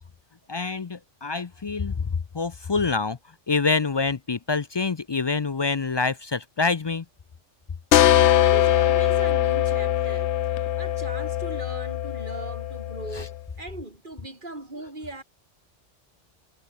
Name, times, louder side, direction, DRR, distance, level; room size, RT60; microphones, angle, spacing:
voice 1, 0.5-2.1 2.3-3.2 3.5-7.0, left 4 dB, 45° left, 0.3 m, -26 dB
sound 1, 7.9-13.4, left 12 dB, 75° left, 0.9 m, -22 dB
voice 2, 8.1-15.2, right 2 dB, 45° right, 5.4 m, -39 dB
omnidirectional pair, 1.2 m